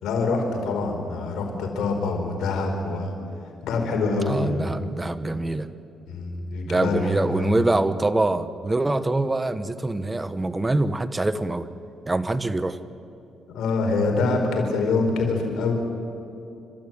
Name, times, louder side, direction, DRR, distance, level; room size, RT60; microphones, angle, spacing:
voice 1, 0.0-3.1 3.6-4.7 6.1-7.6 13.5-15.7, left 3 dB, 80° left, 3 dB, 4.5 m, -25 dB
voice 2, 4.3-5.7 6.6-11.7 12.1-12.8, right 2 dB, 15° right, 12 dB, 1.1 m, -24 dB
30.0 x 13.0 x 9.3 m, 2.8 s
cardioid pair, 90°, 0 cm